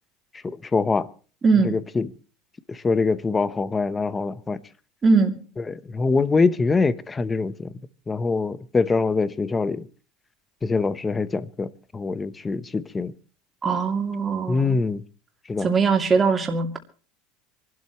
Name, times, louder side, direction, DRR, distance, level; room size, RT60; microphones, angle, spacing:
voice 1, 0.4-1.1 1.6-2.1 2.7-4.6 5.7-7.7 8.1-9.9 10.6-13.1 14.5-15.0 15.5-15.7, left 4 dB, 15° left, 0.9 m, -24 dB
voice 2, 1.4-1.7 5.0-5.4 13.6-14.8 15.6-16.8, right 4 dB, 20° right, 2.6 m, -21 dB
27.0 x 12.5 x 3.1 m
cardioid pair, 155°, 0 cm